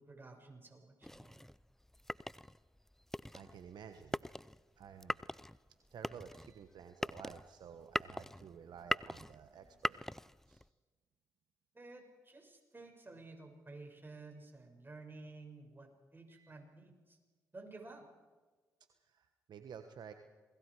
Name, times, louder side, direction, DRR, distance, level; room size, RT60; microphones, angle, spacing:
voice 1, 0.0-1.4 11.7-17.2 17.5-18.0, right 3 dB, 25° right, 3 dB, 6.4 m, -53 dB
sound 1, 1.0-10.7, left 1 dB, 5° left, 0.5 m, -41 dB
voice 2, 3.3-4.2 4.8-5.2 5.9-10.0 10.5-10.6 16.3-16.6 19.1-20.1, right 7 dB, 65° right, 7 dB, 1.3 m, -52 dB
28.5 x 21.5 x 4.9 m, 1.3 s
supercardioid pair, 50°, 8 cm